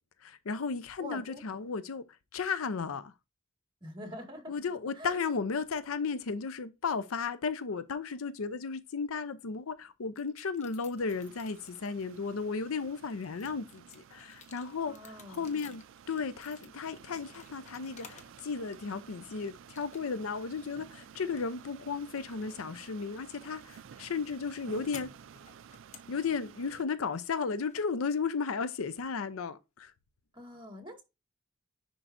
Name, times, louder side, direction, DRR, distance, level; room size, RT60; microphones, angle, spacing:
voice 1, 0.2-3.1 4.5-15.8 16.1-25.1 26.1-29.9, left 5 dB, 90° left, 0.6 m, -34 dB
voice 2, 1.0-1.4 3.8-4.5 5.0-5.2 14.9-15.5 30.3-31.0, equal, 25° right, 1.9 m, -44 dB
sound 1, 10.2-12.2 12.7-18.4 18.7-19.3 19.8-20.4 20.6-28.6, left 6 dB, 35° left, 1.0 m, -56 dB
sound 2, 11.0-26.8, right 7 dB, 65° right, 0.4 m, -53 dB
10.0 x 4.6 x 2.6 m
head